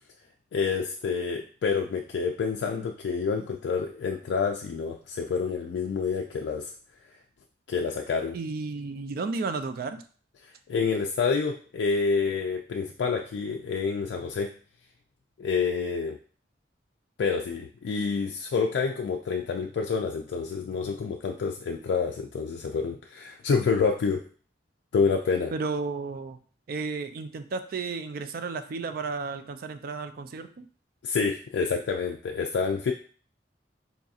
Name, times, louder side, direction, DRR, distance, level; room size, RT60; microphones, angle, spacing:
voice 1, 0.5-6.7 7.7-8.4 10.7-14.5 15.4-16.2 17.2-24.2 24.9-25.5 31.0-32.9, left 5 dB, 75° left, 2 dB, 0.3 m, -28 dB
voice 2, 8.3-10.0 25.5-26.4 26.7-30.6, right 4 dB, 55° right, 9 dB, 0.3 m, -33 dB
4.0 x 2.7 x 2.4 m, 0.42 s
head